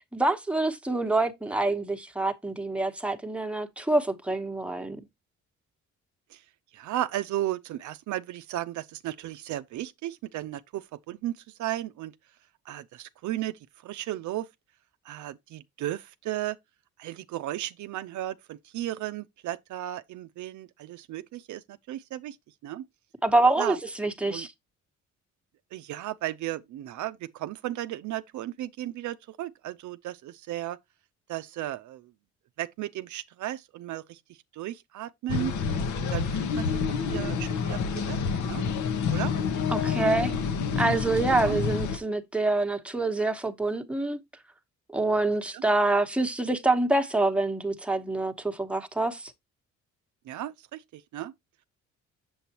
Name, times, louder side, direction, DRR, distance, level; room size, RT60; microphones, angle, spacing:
voice 1, 0.1-5.0 23.2-24.5 39.7-40.3 40.8-44.2 44.9-49.3, right 2 dB, 5° right, 1.0 m, -26 dB
voice 2, 6.7-12.1 12.7-14.5 15.1-16.6 17.0-22.4 22.6-22.8 23.6-23.8 24.3-24.5 25.7-30.8 31.3-32.1 32.6-34.2 34.5-35.5 36.0-36.8 37.1-38.6 39.1-39.3 41.2-41.6 45.5-45.6 50.3-51.3, right 13 dB, 75° right, 0.5 m, -35 dB
sound 1, 35.3-42.0, left 6 dB, 75° left, 1.0 m, -28 dB
7.1 x 6.8 x 2.9 m
cardioid pair, 90°, 30 cm